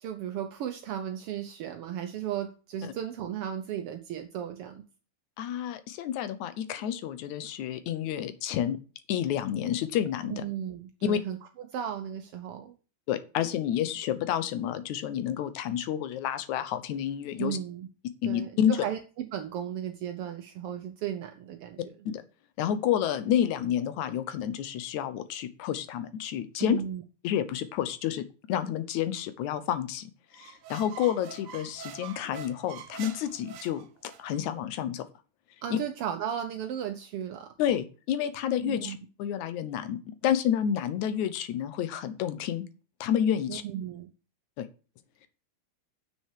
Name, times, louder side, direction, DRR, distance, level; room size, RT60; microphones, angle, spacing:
voice 1, 0.0-4.8 10.3-12.7 17.4-17.9 18.3-21.9 26.6-27.0 35.6-37.5 38.6-39.0 43.5-44.1, right 9 dB, 80° right, 6 dB, 1.3 m, -35 dB
voice 2, 5.4-8.8 9.1-10.4 11.0-11.2 13.1-17.6 18.2-18.7 22.1-22.2 22.6-26.8 27.2-35.0 35.7-35.8 37.6-42.7 43.0-43.6 44.6-44.7, left 10 dB, 75° left, 11 dB, 2.2 m, -29 dB
sound 1, 30.4-34.4, right 8 dB, 60° right, 1.6 m, -45 dB
7.8 x 6.2 x 6.5 m, 0.35 s
omnidirectional pair, 3.6 m